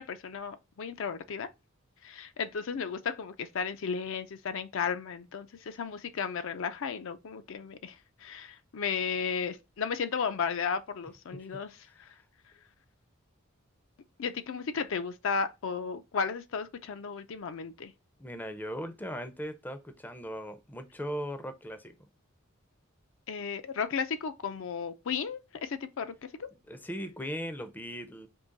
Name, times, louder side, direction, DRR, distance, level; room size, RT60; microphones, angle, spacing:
voice 1, 0.0-1.5 2.0-7.9 8.2-11.7 14.2-17.9 23.3-26.1 26.4-26.5, left 6 dB, 65° left, 0.5 m, -34 dB
voice 2, 18.2-22.0 26.7-28.3, equal, 10° left, 0.5 m, -38 dB
3.8 x 2.9 x 3.9 m
head